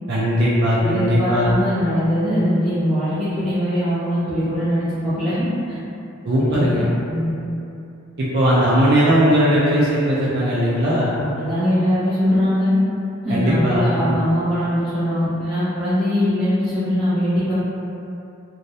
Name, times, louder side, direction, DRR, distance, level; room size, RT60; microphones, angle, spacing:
voice 1, 0.1-1.5 6.2-6.9 8.2-11.1 13.3-14.1, equal, 55° right, -8 dB, 0.3 m, -18 dB
voice 2, 0.8-5.8 6.3-6.8 7.1-7.3 11.1-12.7 13.2-17.6, equal, 5° right, -18 dB, 0.6 m, -21 dB
2.3 x 2.0 x 2.6 m, 2.7 s
head